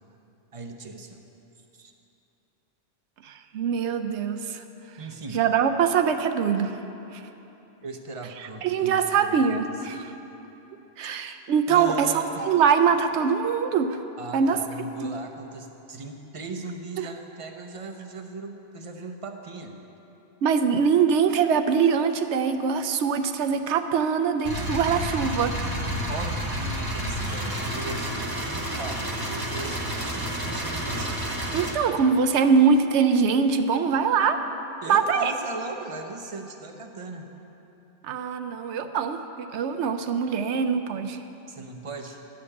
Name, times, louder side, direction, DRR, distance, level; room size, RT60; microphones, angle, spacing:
voice 1, 0.5-1.2 1.7-1.9 5.0-5.4 7.8-9.4 9.7-9.8 11.7-12.4 14.2-19.7 26.1-31.1 34.8-37.3 41.5-42.2, right 3 dB, 35° right, 4 dB, 0.6 m, -38 dB
voice 2, 3.2-4.6 5.3-6.8 7.1-7.2 8.4-10.1 11.0-14.0 14.3-14.6 15.0-15.2 17.0-17.1 20.4-25.5 31.5-34.4 34.9-35.3 38.0-41.2, right 6 dB, 75° right, 8 dB, 0.8 m, -23 dB
sound 1, 24.4-31.7, right 1 dB, 20° right, 1.1 m, -30 dB
11.0 x 5.1 x 8.4 m, 3.0 s
omnidirectional pair, 1.2 m